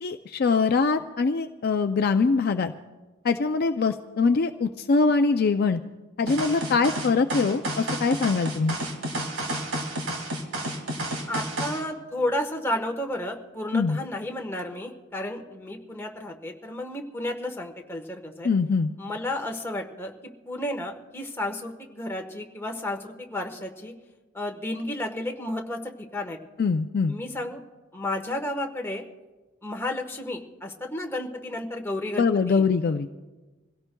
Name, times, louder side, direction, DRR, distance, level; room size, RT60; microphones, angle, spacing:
voice 1, 0.0-2.7 3.2-5.8 6.2-8.8 13.7-14.0 18.4-18.9 26.6-27.2 32.2-33.1, left 4 dB, 50° left, 7 dB, 0.4 m, -23 dB
sound 1, 6.3-11.8, right 1 dB, 80° right, 2.1 m, -31 dB
voice 2, 11.3-18.5 19.0-20.1 20.5-23.9 24.3-25.8 26.1-26.4 27.1-27.6 27.9-29.0 29.6-32.6, left 1 dB, 10° left, 2 dB, 1.2 m, -32 dB
26.5 x 17.0 x 2.3 m, 1.2 s
head